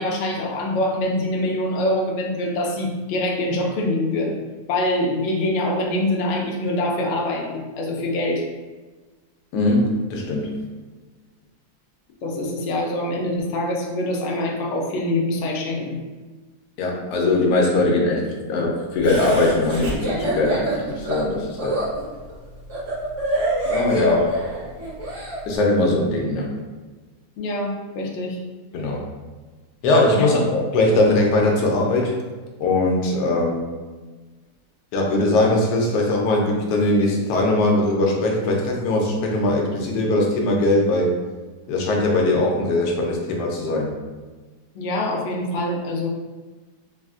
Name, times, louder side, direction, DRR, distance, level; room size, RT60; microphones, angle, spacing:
voice 1, 0.0-4.4 4.7-8.4 12.2-16.0 27.4-28.4 30.1-30.4 44.7-46.1, left 1 dB, 65° left, -1 dB, 0.7 m, -24 dB
voice 2, 9.5-10.5 16.8-21.8 23.7-24.4 25.5-26.5 28.7-29.0 29.8-32.1 32.6-33.7 34.9-41.1 41.7-43.9, left 2 dB, 90° left, 0 dB, 1.2 m, -20 dB
Laughter, 19.0-25.4, right 2 dB, 60° right, 1.4 m, -26 dB
3.4 x 2.4 x 2.3 m, 1.3 s
omnidirectional pair, 1.7 m